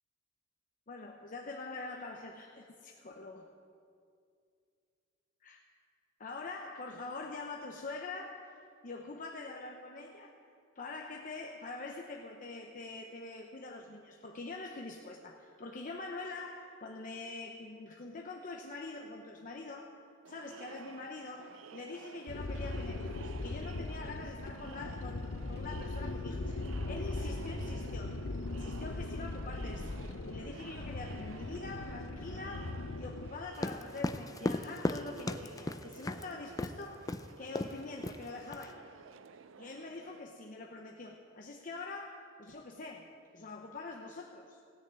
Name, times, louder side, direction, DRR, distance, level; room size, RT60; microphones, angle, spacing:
voice 1, 0.9-3.5 5.4-5.6 6.2-8.6 8.8-10.4 10.8-19.9 20.3-26.5 26.8-28.2 28.5-30.0 30.3-37.0 37.4-38.8 39.6-44.6, left 3 dB, 45° left, 1 dB, 0.8 m, -44 dB
Crowd, 20.2-40.2, right 5 dB, 75° right, 0.5 m, -53 dB
sound 1, 22.3-33.3, left 2 dB, 85° left, 0.7 m, -39 dB
sound 2, 33.5-36.2 36.6-36.8 37.1-37.3 37.5-37.8 38.0-38.6, left 2 dB, 20° left, 0.4 m, -35 dB
17.0 x 6.6 x 8.9 m, 2.4 s
head